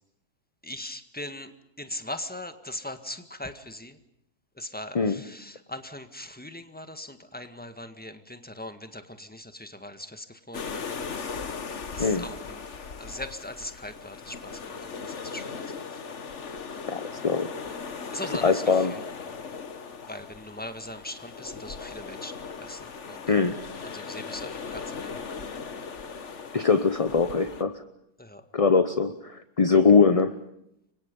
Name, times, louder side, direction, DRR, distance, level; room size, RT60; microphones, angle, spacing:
voice 1, 0.6-1.5 1.8-3.9 4.6-10.9 11.9-12.6 13.0-15.6 18.1-18.6 20.1-22.3 22.6-22.8 23.1-23.2 23.9-25.1 28.2-28.4, left 1 dB, 5° left, 8 dB, 1.7 m, -40 dB
sound 1, 10.5-27.6, left 5 dB, 45° left, 1.6 m, -38 dB
voice 2, 16.9-17.5 18.2-19.0 23.3-23.6 26.5-27.8 28.5-30.4, left 4 dB, 25° left, 10 dB, 0.8 m, -22 dB
30.0 x 24.5 x 5.4 m, 0.78 s
omnidirectional pair, 1.7 m